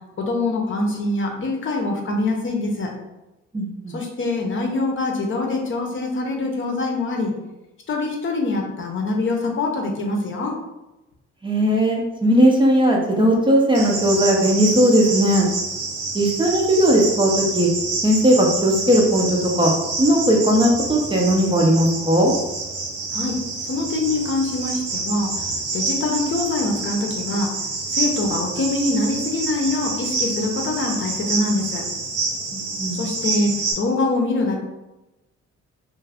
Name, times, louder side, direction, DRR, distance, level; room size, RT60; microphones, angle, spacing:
voice 1, 0.2-2.9 3.9-7.3 7.9-10.5 23.1-23.4 23.7-25.3 25.7-27.5 27.9-31.8 33.0-34.6, left 2 dB, 40° left, 1 dB, 0.7 m, -24 dB
voice 2, 3.5-3.9 11.4-15.5 16.1-17.7 18.0-19.7 20.0-22.3 32.5-33.0, equal, 15° right, -1 dB, 0.5 m, -18 dB
Cricket, 13.7-33.7, right 3 dB, 85° right, 0.9 m, -27 dB
2.4 x 2.3 x 3.3 m, 1.0 s
cardioid pair, 90°, 30 cm